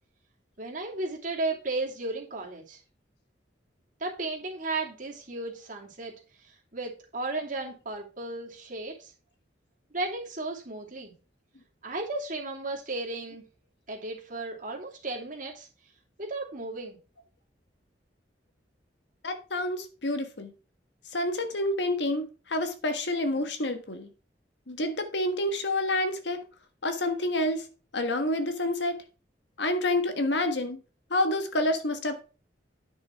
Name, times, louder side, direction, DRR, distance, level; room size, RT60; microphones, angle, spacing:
voice 1, 0.6-2.8 4.0-6.1 6.4-9.1 9.9-11.1 11.8-13.4 13.9-15.7 16.2-17.0, right 2 dB, 45° right, 2.8 m, -34 dB
voice 2, 19.2-20.5 21.1-24.1 24.7-26.4 26.8-27.6 27.9-29.0 29.6-30.8 31.1-32.2, left 1 dB, 70° left, 1.5 m, -28 dB
9.9 x 5.9 x 4.6 m
head